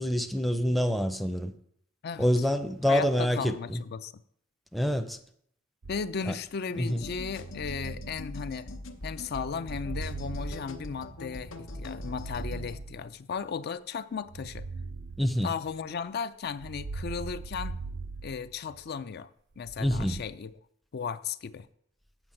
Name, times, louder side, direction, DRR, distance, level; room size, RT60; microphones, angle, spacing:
voice 1, 0.0-1.5 2.2-3.8 4.7-5.2 6.3-6.4 6.8-7.0 15.2-15.5 19.8-20.2, equal, ahead, 0.5 m, -26 dB
voice 2, 2.0-2.4 2.8-4.1 5.9-8.7 9.0-14.7 15.4-17.8 18.2-19.3 19.6-20.5 20.9-21.7, left 6 dB, 55° left, 0.4 m, -35 dB
sound 1, 5.8-6.5 7.3-9.0 9.6-11.4 11.9-13.5 14.3-15.9 16.5-19.0 19.6-20.2, right 3 dB, 55° right, 0.5 m, -41 dB
sound 2, 6.9-12.8, left 1 dB, 85° left, 1.0 m, -41 dB
7.3 x 6.0 x 7.6 m
head